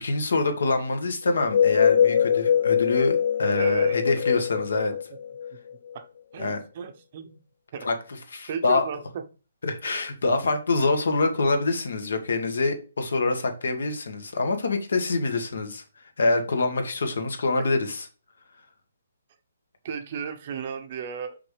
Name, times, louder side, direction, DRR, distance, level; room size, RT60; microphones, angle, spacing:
voice 1, 0.0-4.9 6.4-6.6 7.8-7.9 8.3-8.8 9.6-15.8 16.2-18.0, left 3 dB, 75° left, 7 dB, 1.6 m, -25 dB
sound 1, 1.3-5.9, left 8 dB, 55° left, 0.5 m, -23 dB
voice 2, 3.5-4.0 5.9-6.1 6.3-7.4 7.7-7.9 8.5-9.2 19.8-21.4, right 7 dB, 35° right, 8 dB, 0.7 m, -34 dB
5.9 x 5.2 x 3.3 m, 0.35 s
hypercardioid pair, 165°, 0 cm